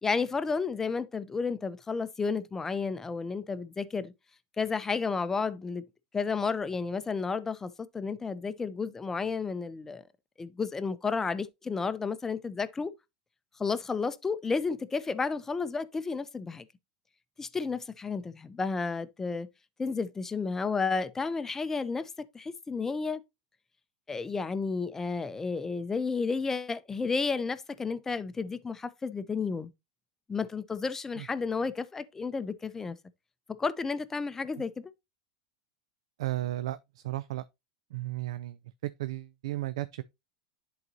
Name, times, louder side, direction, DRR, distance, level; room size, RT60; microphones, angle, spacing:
voice 1, 0.0-4.1 4.6-5.9 6.1-10.0 10.4-12.9 13.6-16.7 17.4-19.5 19.8-23.2 24.1-29.7 30.3-33.0 33.5-34.9, left 4 dB, 15° left, 0.5 m, -32 dB
voice 2, 36.2-37.4 37.9-38.6 39.0-40.0, right 15 dB, 80° right, 0.3 m, -34 dB
10.5 x 3.9 x 2.6 m
supercardioid pair, 125°, 3 cm